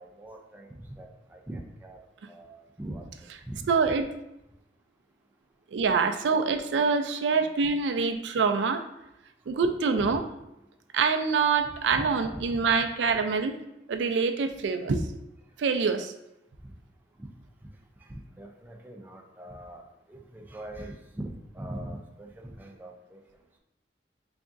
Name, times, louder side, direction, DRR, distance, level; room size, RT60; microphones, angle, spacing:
voice 1, 0.0-2.0 2.3-3.1 3.5-3.7 7.1-7.5 10.0-10.1 11.9-12.1 12.3-12.9 16.6-16.7 18.1-19.8 20.1-23.2, right 1 dB, 10° right, 2 dB, 0.4 m, -42 dB
voice 2, 3.7-4.1 5.7-8.8 9.5-10.2 10.9-13.5 13.9-15.0 15.6-16.1, right 5 dB, 90° right, 7 dB, 0.4 m, -25 dB
3.9 x 3.5 x 2.5 m, 0.88 s
head